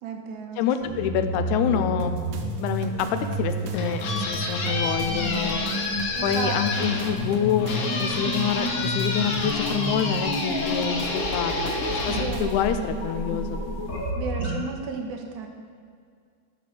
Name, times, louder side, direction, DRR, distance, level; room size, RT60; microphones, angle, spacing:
voice 1, 0.0-0.6 6.2-6.9 12.0-12.6 14.1-15.5, right 5 dB, 85° right, 3 dB, 2.2 m, -33 dB
voice 2, 0.6-2.1 2.6-5.6 6.2-7.7 8.0-14.1, left 8 dB, 85° left, 8 dB, 2.0 m, -27 dB
sound 1, 0.8-14.5, equal, 40° left, 1.5 m, -30 dB
sound 2, 2.0-12.7, right 4 dB, 70° right, 1.7 m, -44 dB
sound 3, 3.5-13.2, left 3 dB, 60° left, 1.5 m, -30 dB
12.0 x 4.2 x 6.3 m, 2.1 s
omnidirectional pair, 3.3 m